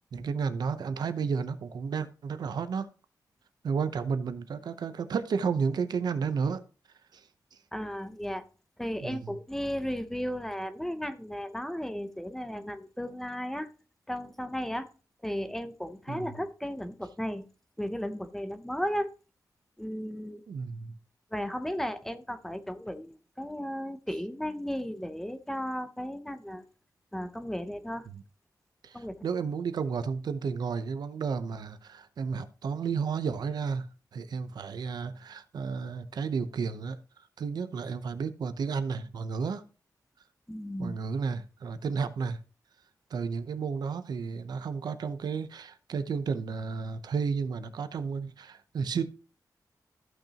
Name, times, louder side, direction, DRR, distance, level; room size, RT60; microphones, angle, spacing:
voice 1, 0.1-2.9 3.6-6.6 7.1-7.2 9.0-9.4 16.1-16.4 20.5-20.9 28.1-28.2 28.8-33.9 34.1-37.0 37.4-39.6 40.8-42.4 43.1-49.0, right 5 dB, 75° right, 0.8 m, -32 dB
voice 2, 7.7-8.4 8.8-13.7 14.1-14.9 15.2-17.4 17.8-19.1 19.8-20.4 21.3-26.6 27.1-28.1 28.9-29.2 40.5-41.0, equal, 5° left, 0.6 m, -35 dB
14.5 x 6.0 x 2.9 m
wide cardioid pair, 175°, 7 cm